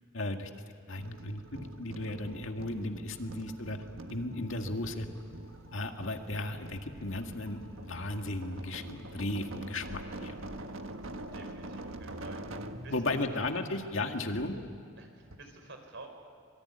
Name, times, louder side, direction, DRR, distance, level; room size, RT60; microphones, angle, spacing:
voice 1, 0.1-0.5 0.9-3.8 4.1-5.1 5.7-10.4 12.9-14.6, left 2 dB, 75° left, 4 dB, 2.0 m, -35 dB
sound 1, 1.0-12.9 14.3-15.0 15.3-15.4, right 1 dB, 85° right, 1.4 m, -45 dB
sound 2, 4.8-13.5, equal, 20° left, 5.5 m, -52 dB
voice 2, 11.3-12.9 15.0-16.1, right 2 dB, 65° right, 5 dB, 4.8 m, -50 dB
26.0 x 23.5 x 9.9 m, 2.2 s
head